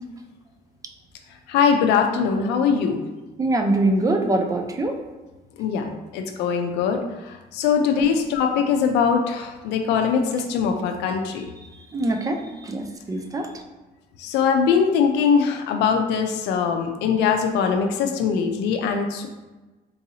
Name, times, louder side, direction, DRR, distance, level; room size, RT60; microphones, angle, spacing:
voice 1, 1.5-3.0 5.6-5.8 6.1-11.5 14.2-19.3, left 6 dB, 85° left, 4 dB, 0.4 m, -22 dB
voice 2, 3.4-5.0 8.0-8.2 11.9-13.5, right 2 dB, 20° right, 5 dB, 0.4 m, -23 dB
3.8 x 2.7 x 2.7 m, 1.2 s
cardioid pair, 110°, 17 cm